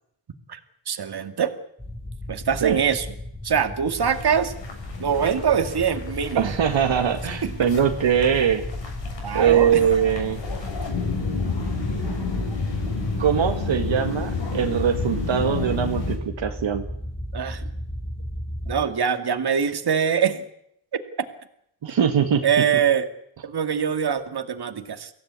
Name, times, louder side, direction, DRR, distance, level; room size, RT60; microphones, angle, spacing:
voice 1, 0.9-1.5 2.3-3.1 3.4-4.5 5.0-6.5 7.4-7.5 9.2-9.9 17.3-17.6 18.7-20.4 20.9-21.0 22.4-23.1 23.4-25.1, right 7 dB, 55° right, 8 dB, 2.4 m, -23 dB
sound 1, 1.8-18.8, left 1 dB, 10° left, 2.5 m, -35 dB
sound 2, 4.0-16.2, left 3 dB, 65° left, 6.9 m, -31 dB
voice 2, 6.4-8.6 9.3-10.4 13.2-16.9 21.8-22.4, right 8 dB, 70° right, 4 dB, 2.0 m, -22 dB
23.5 x 16.5 x 9.6 m, 0.74 s
cardioid pair, 95°, 47 cm